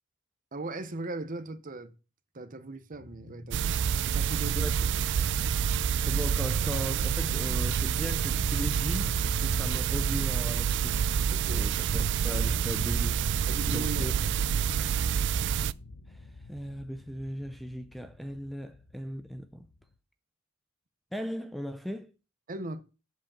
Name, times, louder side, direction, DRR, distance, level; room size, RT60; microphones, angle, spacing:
voice 1, 0.5-1.9 2.3-3.7 4.0-4.7 11.3-11.7 13.5-14.2 22.5-22.8, right 2 dB, 40° right, 0.9 m, -38 dB
sound 1, 2.9-19.9, left 2 dB, 90° left, 1.0 m, -44 dB
sound 2, 3.5-15.7, right 8 dB, 60° right, 0.3 m, -28 dB
voice 2, 6.0-11.0 11.5-13.3 13.7-14.1 16.5-19.7 21.1-22.1, equal, ahead, 0.5 m, -37 dB
8.2 x 4.8 x 7.2 m
head